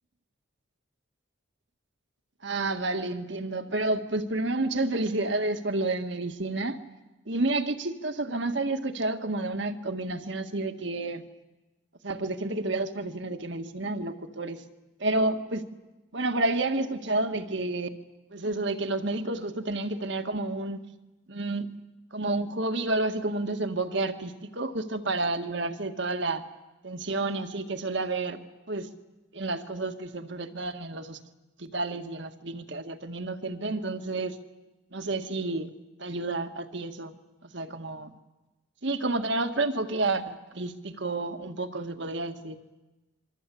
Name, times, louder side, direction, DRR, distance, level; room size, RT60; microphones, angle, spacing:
voice 1, 2.4-6.8 7.3-11.2 12.0-14.6 15.0-15.7 16.1-17.9 18.3-20.8 21.3-21.7 22.1-26.4 26.8-28.4 28.7-28.9 29.3-31.2 31.6-34.4 34.9-35.7 36.0-37.2 37.5-38.1 38.8-42.6, right 2 dB, 55° right, 7 dB, 1.8 m, -30 dB
26.5 x 25.0 x 8.5 m, 1.1 s
head